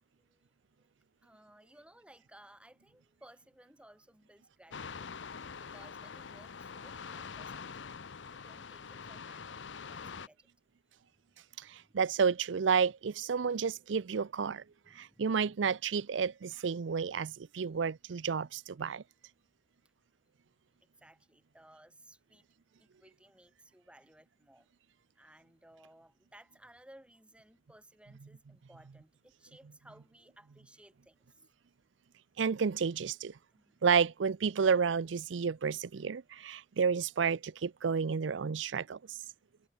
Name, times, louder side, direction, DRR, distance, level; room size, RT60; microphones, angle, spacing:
voice 1, 1.2-5.1 5.6-8.0 8.3-10.5 11.7-12.0 14.8-15.5 20.8-22.5 22.8-24.7 25.1-31.3 33.5-33.8, right 1 dB, 5° right, 3.2 m, -60 dB
sound 1, 4.7-10.3, left 5 dB, 75° left, 0.8 m, -45 dB
voice 2, 11.6-14.6 14.9-19.0 32.4-33.3 33.8-39.2, right 6 dB, 80° right, 0.5 m, -31 dB
head